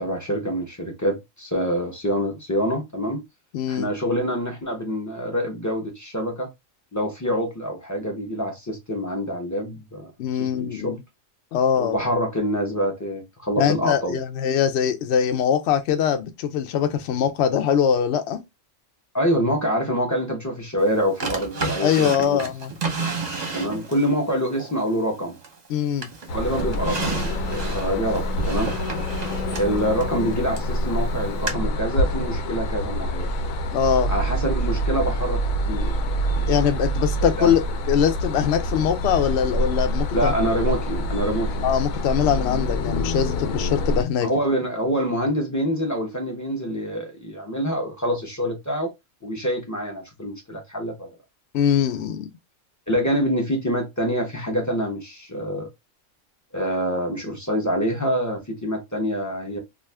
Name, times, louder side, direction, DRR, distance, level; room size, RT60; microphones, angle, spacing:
voice 1, 0.0-3.2 3.7-6.5 6.9-10.1 10.4-10.9 11.8-14.2 19.1-22.4 23.5-25.4 26.3-28.7 29.6-33.3 34.1-35.4 35.7-36.0 36.3-36.5 37.4-37.5 40.1-41.7 44.2-48.9 49.2-51.1 52.9-55.7 56.5-59.6, equal, 20° left, 0.5 m, -26 dB
voice 2, 3.5-3.9 10.2-11.0 11.5-12.0 13.6-18.4 21.8-22.7 25.7-26.1 33.7-34.1 36.5-40.3 41.6-44.3 51.5-52.3, left 8 dB, 65° left, 0.7 m, -22 dB
Drawer open or close, 21.2-24.1 24.6-25.7 26.0-30.7 31.5-31.6, right 4 dB, 40° right, 0.7 m, -31 dB
sound 1, 26.3-44.0, equal, 85° left, 1.0 m, -26 dB
2.4 x 2.4 x 3.2 m
omnidirectional pair, 1.4 m